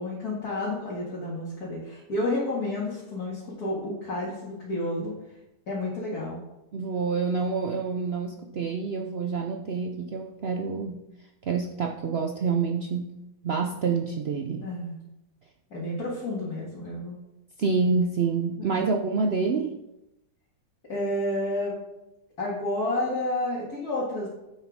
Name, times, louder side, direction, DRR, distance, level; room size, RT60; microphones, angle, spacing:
voice 1, 0.0-5.1 5.7-6.4 14.6-15.0 15.7-17.2 18.6-18.9 20.9-21.7 22.4-24.3, left 1 dB, 60° left, -7 dB, 2.6 m, -30 dB
voice 2, 6.7-11.0 11.4-13.1 13.4-14.7 17.6-19.8, right 4 dB, 65° right, 3 dB, 0.6 m, -27 dB
10.0 x 8.3 x 3.6 m, 0.91 s
omnidirectional pair, 1.8 m